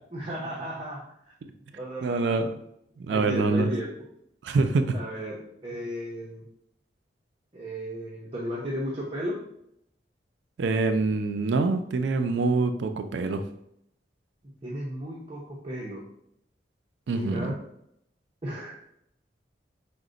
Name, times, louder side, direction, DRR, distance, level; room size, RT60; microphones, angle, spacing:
voice 1, 0.1-1.3 1.7-2.4 3.1-3.9 4.9-6.5 7.5-9.4 14.6-16.0 17.1-17.6 18.4-18.8, equal, 30° right, -4 dB, 0.6 m, -35 dB
voice 2, 2.0-2.5 3.0-3.7 4.4-4.9 10.6-13.4 17.1-17.5, right 3 dB, 75° right, 8 dB, 0.3 m, -25 dB
4.9 x 2.1 x 3.8 m, 0.74 s
head